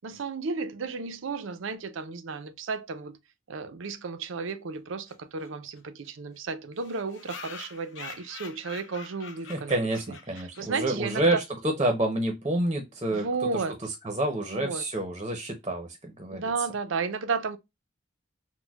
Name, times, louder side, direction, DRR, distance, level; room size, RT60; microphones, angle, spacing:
voice 1, 0.0-3.2 3.5-9.8 10.1-10.2 10.6-11.4 13.1-13.8 14.4-14.8 16.3-17.6, right 4 dB, 75° right, 0.5 m, -33 dB
sound 1, 5.1-5.2 5.4-5.5 5.8-5.9 6.1-6.2 6.8-11.0, left 6 dB, 70° left, 0.7 m, -45 dB
voice 2, 9.5-13.3 13.8-16.5, right 1 dB, 25° right, 0.7 m, -28 dB
6.1 x 2.2 x 2.3 m
head